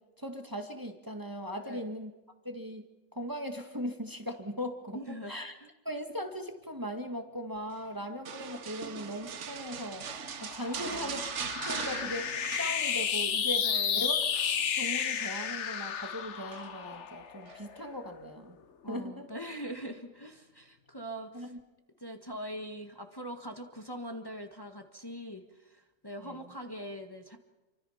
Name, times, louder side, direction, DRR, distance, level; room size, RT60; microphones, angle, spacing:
voice 1, 0.2-2.1 2.4-2.8 3.1-5.0 5.3-5.5 5.9-10.1 10.4-11.3 11.7-13.7 13.9-14.2 14.8-18.6 18.9-19.3 21.3-21.6 26.2-26.4, equal, 15° right, 4 dB, 1.8 m, -38 dB
voice 2, 4.9-5.7 10.7-11.2 13.6-14.1 18.8-21.5 22.0-27.4, equal, 20° left, 4 dB, 1.7 m, -42 dB
sound 1, 8.3-13.3 13.5-13.9 14.3-15.4 16.5-17.0 17.5-17.6, right 7 dB, 75° right, 1.3 m, -41 dB
sound 2, 9.5-18.2, left 7 dB, 70° left, 1.3 m, -32 dB
28.5 x 24.5 x 5.8 m, 1.1 s
omnidirectional pair, 1.2 m